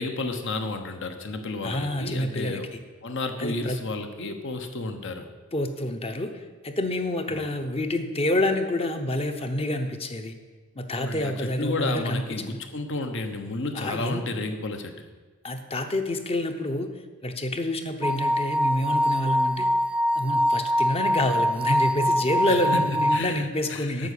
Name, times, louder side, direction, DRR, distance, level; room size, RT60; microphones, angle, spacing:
voice 1, 0.0-2.7 3.0-5.3 7.3-7.5 10.9-15.0 22.4-22.8 23.1-24.1, left 2 dB, 60° left, 7 dB, 1.0 m, -32 dB
voice 2, 1.6-2.6 3.4-3.8 5.5-10.3 10.8-12.6 13.7-14.3 15.4-16.9 17.2-19.7 20.2-24.1, left 1 dB, 25° left, 7 dB, 0.8 m, -28 dB
sound 1, 18.0-23.2, equal, 5° right, 0.3 m, -24 dB
8.9 x 6.2 x 8.4 m, 1.4 s
head